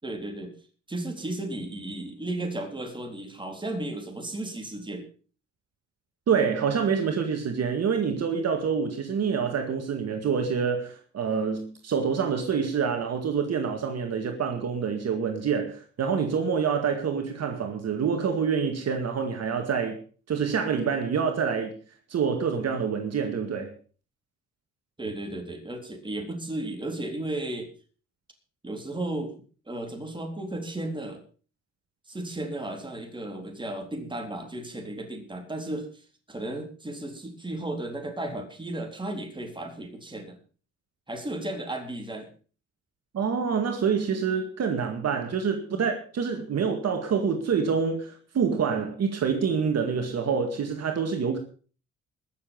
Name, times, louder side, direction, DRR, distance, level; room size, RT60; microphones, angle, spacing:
voice 1, 0.0-0.5 0.9-5.1 25.0-27.7 28.6-29.3 29.7-31.2 32.1-35.9 36.3-40.4 41.1-42.3 45.7-45.8, right 1 dB, 15° right, 4.0 m, -34 dB
voice 2, 6.3-20.0 20.3-21.7 22.1-23.7 43.1-51.4, right 6 dB, 55° right, 2.1 m, -26 dB
21.0 x 7.3 x 5.4 m
cardioid pair, 90°, 30 cm